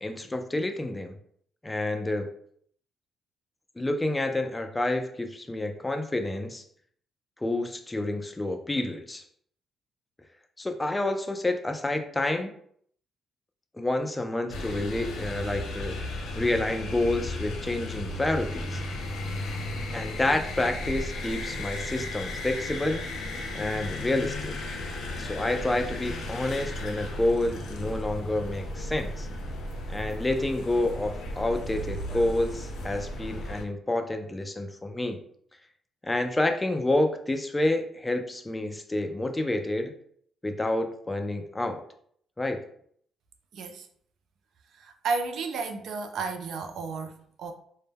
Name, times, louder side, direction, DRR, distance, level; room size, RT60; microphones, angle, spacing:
voice 1, 0.0-1.2 1.6-2.3 3.8-6.6 7.4-9.2 10.6-12.5 13.8-16.0 16.4-18.8 19.9-23.1 23.5-24.6 25.2-29.3 29.9-35.2 36.0-39.9 40.4-41.8 42.4-42.6, left 1 dB, 15° left, 0.3 m, -29 dB
sound 1, 14.5-33.6, left 1 dB, 75° left, 0.5 m, -35 dB
voice 2, 43.5-43.9 44.7-47.5, right 4 dB, 70° right, 0.3 m, -33 dB
2.1 x 2.0 x 3.3 m
cardioid pair, 90°, 0 cm